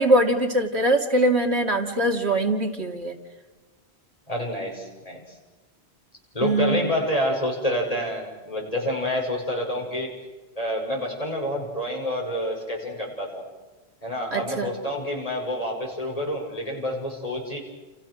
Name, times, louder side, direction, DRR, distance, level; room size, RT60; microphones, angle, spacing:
voice 1, 0.0-3.1 6.4-6.9 14.3-14.7, right 1 dB, 80° right, 3 dB, 2.8 m, -22 dB
voice 2, 4.3-5.3 6.3-10.1 10.6-13.4 14.0-17.6, left 1 dB, 35° left, 0 dB, 6.4 m, -28 dB
29.5 x 29.0 x 6.4 m, 1.3 s
omnidirectional pair, 1.1 m